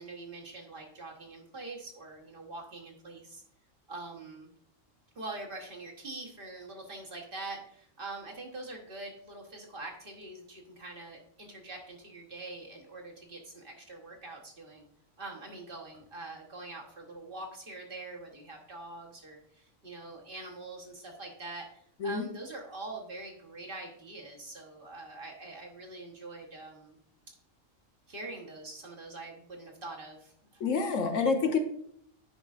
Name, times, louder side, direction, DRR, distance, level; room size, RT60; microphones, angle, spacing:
voice 1, 0.0-3.4 3.9-4.5 5.1-14.8 15.2-21.7 22.0-27.0 28.1-30.6, right 2 dB, 45° right, 0 dB, 1.2 m, -44 dB
voice 2, 30.6-31.6, left 5 dB, 75° left, 5 dB, 1.2 m, -27 dB
9.5 x 5.2 x 2.4 m, 0.65 s
omnidirectional pair, 1.4 m